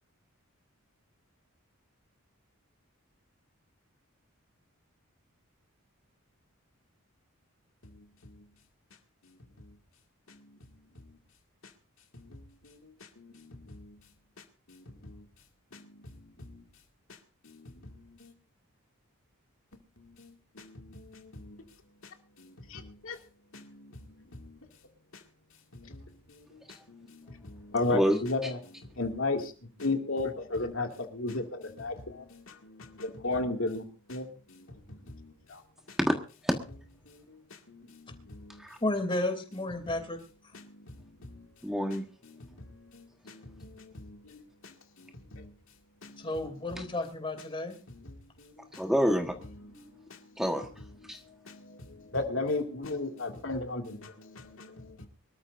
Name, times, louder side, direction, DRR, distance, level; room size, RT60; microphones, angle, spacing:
voice 1, 13.2-13.8 14.7-14.8 17.5-17.6 18.2-18.3 20.2-21.6 22.4-23.2 23.5-23.6 24.3-24.6 25.7-26.0 26.3-26.4 26.9-28.4 29.0-29.5 29.8-33.8 34.1-34.3 35.1-35.6 37.1-37.2 37.7-38.6 41.3-41.4 42.9-44.7 45.3-45.5 46.0-46.1 48.4-48.5 51.5-51.6 52.1-55.1, left 2 dB, 65° left, 3 dB, 2.3 m, -35 dB
voice 2, 27.9-28.5 36.0-36.2 36.4-36.6 38.6-38.8 41.6-42.1 46.8-46.9 48.7-49.4 49.7-49.9 50.4-50.7 51.1-51.2, equal, ahead, 3 dB, 1.4 m, -28 dB
voice 3, 38.8-40.2 46.2-47.8, left 2 dB, 25° left, 7 dB, 2.9 m, -32 dB
25.0 x 13.5 x 2.6 m, 0.35 s
head